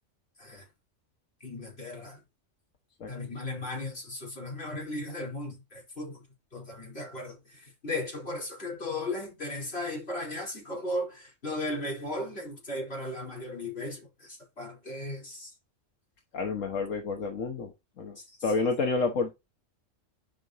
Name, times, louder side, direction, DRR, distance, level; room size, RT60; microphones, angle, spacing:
voice 1, 1.4-2.2 3.1-6.2 6.5-15.5 18.2-18.4, left 1 dB, 50° left, 4.4 m, -36 dB
voice 2, 16.3-18.2 18.4-19.3, left 4 dB, 80° left, 1.6 m, -29 dB
9.7 x 5.5 x 3.0 m
omnidirectional pair, 1.3 m